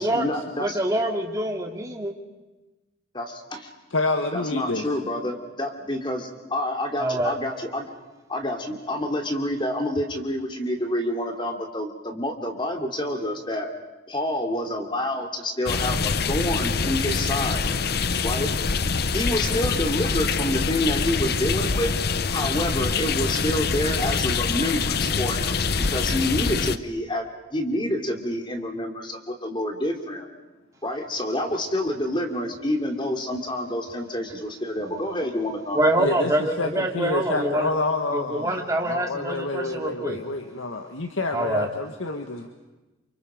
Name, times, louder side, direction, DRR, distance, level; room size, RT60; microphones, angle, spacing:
voice 1, 0.0-0.8 3.1-3.7 4.3-7.9 8.3-13.7 14.1-17.7 18.2-18.5 19.1-21.9 22.3-30.3 30.8-35.8, left 1 dB, 25° left, 3 dB, 3.0 m, -28 dB
voice 2, 0.6-2.1 7.0-7.3 35.7-37.7 38.1-40.2 41.3-41.7, right 1 dB, 15° right, 2 dB, 2.4 m, -25 dB
voice 3, 3.9-4.8 36.0-42.5, left 2 dB, 85° left, 5 dB, 1.7 m, -28 dB
sound 1, 15.7-26.8, left 5 dB, 50° left, 0.8 m, -25 dB
30.0 x 28.0 x 5.2 m, 1.1 s
head